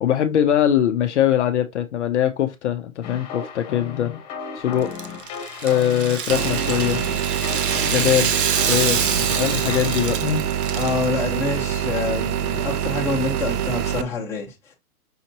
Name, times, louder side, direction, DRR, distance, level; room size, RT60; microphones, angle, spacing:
voice 1, 0.0-4.1 4.6-4.9 5.6-7.0 7.9-8.3 8.7-10.5, left 10 dB, 50° left, 0.6 m, -22 dB
sound 1, 3.0-10.2, left 6 dB, 30° left, 1.2 m, -34 dB
Rattle (instrument), 4.8-11.0, right 7 dB, 35° right, 0.5 m, -26 dB
sound 2, 6.3-14.0, right 9 dB, 80° right, 0.7 m, -25 dB
voice 2, 10.7-14.7, left 4 dB, 5° left, 0.8 m, -27 dB
5.6 x 2.9 x 2.8 m
hypercardioid pair, 145°, 45 cm